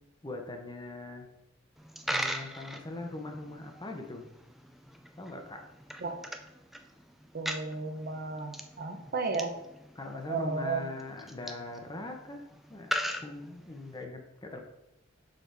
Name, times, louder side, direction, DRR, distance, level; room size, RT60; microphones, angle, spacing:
voice 1, 0.2-1.3 2.1-4.3 5.2-5.7 9.9-14.6, left 2 dB, 20° left, 3 dB, 0.8 m, -41 dB
Coin (dropping), 1.8-14.0, equal, ahead, 0.3 m, -40 dB
voice 2, 7.3-9.5 10.3-10.8, right 4 dB, 50° right, 4 dB, 0.8 m, -33 dB
6.5 x 4.6 x 3.4 m, 0.86 s
head